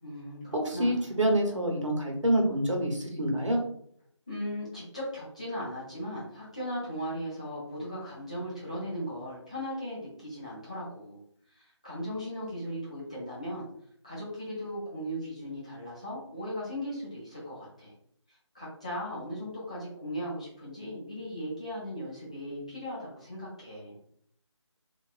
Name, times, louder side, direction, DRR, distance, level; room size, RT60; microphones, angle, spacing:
voice 1, 0.0-1.1 4.3-11.2 11.5-13.7 14.0-17.9 18.3-24.0, equal, 15° left, -8 dB, 0.4 m, -37 dB
voice 2, 0.5-3.6, right 1 dB, 85° right, 1 dB, 1.0 m, -27 dB
3.0 x 2.3 x 2.4 m, 0.66 s
figure-of-eight pair, 165°, 15 cm